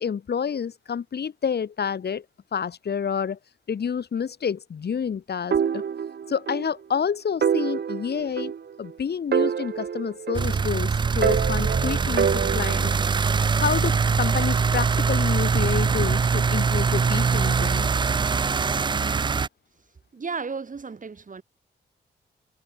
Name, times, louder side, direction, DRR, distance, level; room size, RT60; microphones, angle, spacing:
voice 1, 0.0-2.2 2.5-3.4 3.7-5.8 6.3-8.5 8.8-12.9 13.6-17.9, left 7 dB, 65° left, 4.2 m, -29 dB
sound 1, 5.5-6.7 7.0-7.1 7.4-8.9 9.3-10.8 11.2-13.1, right 7 dB, 65° right, 3.1 m, -26 dB
sound 2, 10.3-19.5, right 5 dB, 25° right, 0.3 m, -23 dB
voice 2, 20.1-21.4, right 5 dB, 45° right, 5.9 m, -33 dB
cardioid pair, 65°, 18 cm